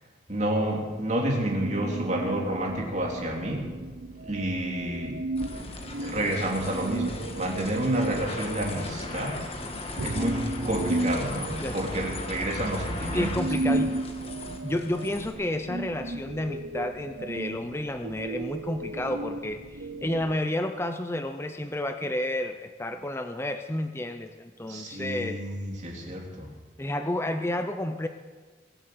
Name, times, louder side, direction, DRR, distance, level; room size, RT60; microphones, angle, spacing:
voice 1, 0.3-3.6 4.2-5.2 5.5-9.4 10.0-13.3 24.7-26.5, right 1 dB, 40° right, -1 dB, 3.0 m, -30 dB
sound 1, 1.2-20.4, right 2 dB, 75° right, 0.9 m, -35 dB
sound 2, 5.4-15.3, left 2 dB, 30° left, 1.7 m, -37 dB
voice 2, 11.3-11.8 13.1-13.9 14.6-25.4 26.8-28.1, left 1 dB, 15° left, 7 dB, 0.6 m, -31 dB
22.0 x 8.0 x 7.9 m, 1.5 s
head